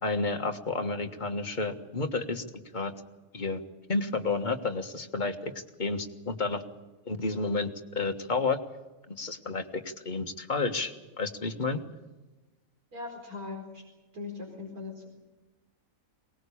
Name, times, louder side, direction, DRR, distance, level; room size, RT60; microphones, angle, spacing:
voice 1, 0.0-2.4 2.7-2.9 3.3-3.6 3.9-5.5 5.8-6.6 7.1-7.7 7.9-8.6 9.1-11.8, left 3 dB, 30° left, 5 dB, 1.7 m, -31 dB
voice 2, 12.9-13.8 14.1-15.1, left 3 dB, 75° right, 2 dB, 4.9 m, -40 dB
23.0 x 19.5 x 8.6 m, 1.1 s
omnidirectional pair, 1.5 m